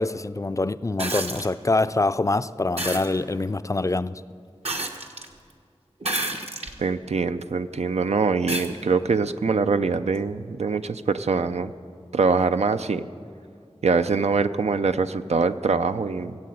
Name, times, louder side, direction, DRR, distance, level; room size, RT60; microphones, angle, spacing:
voice 1, 0.0-4.1, left 2 dB, 30° left, 14 dB, 0.4 m, -25 dB
sound 1, 1.0-1.5 2.8-3.1 4.6-5.3 6.0-6.8 7.4-7.5 8.5-8.7 10.1-10.2, right 2 dB, 70° right, 1.2 m, -29 dB
voice 2, 6.8-11.7 12.1-13.1 13.8-16.4, right 4 dB, 90° right, 10 dB, 0.4 m, -23 dB
17.0 x 8.5 x 7.8 m, 2.3 s
wide cardioid pair, 45°, 11 cm